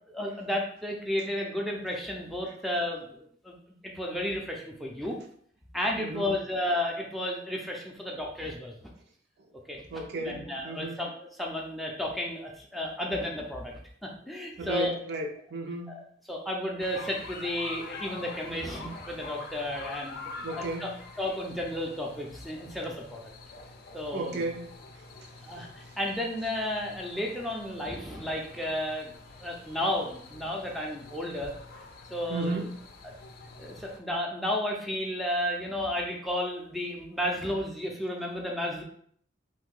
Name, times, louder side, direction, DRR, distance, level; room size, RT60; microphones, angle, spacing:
voice 1, 0.1-3.5 3.8-5.2 5.7-8.8 9.7-9.8 10.2-14.9 15.9-16.0 16.3-20.2 20.6-20.9 21.2-23.2 23.9-24.4 25.4-29.1 29.4-31.5 32.1-32.6 33.6-38.8, left 1 dB, ahead, -1 dB, 0.4 m, -32 dB
voice 2, 6.0-6.3 9.9-11.0 14.6-16.0 20.4-21.0 24.1-24.7 32.3-32.7, right 2 dB, 55° right, 4 dB, 0.5 m, -34 dB
sound 1, 16.8-34.0, left 3 dB, 50° left, 0.5 m, -46 dB
2.7 x 2.6 x 3.7 m, 0.62 s
head